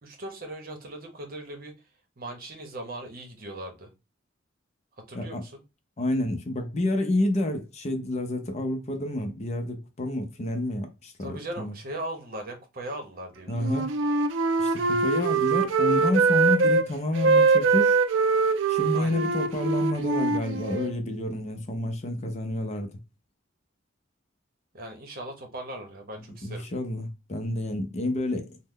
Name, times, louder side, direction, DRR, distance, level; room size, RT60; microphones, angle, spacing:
voice 1, 0.0-1.7 2.2-3.9 5.1-5.6 11.2-13.7 18.9-19.2 24.7-26.7, right 1 dB, 50° right, 0.8 m, -39 dB
voice 2, 6.0-11.7 13.5-13.9 14.6-18.0 18.7-22.9 26.4-28.6, left 1 dB, 35° left, 0.5 m, -29 dB
Wind instrument woodwind instrument, 13.6-16.9 17.2-20.9, right 4 dB, 70° right, 0.4 m, -23 dB
3.1 x 2.1 x 3.6 m
head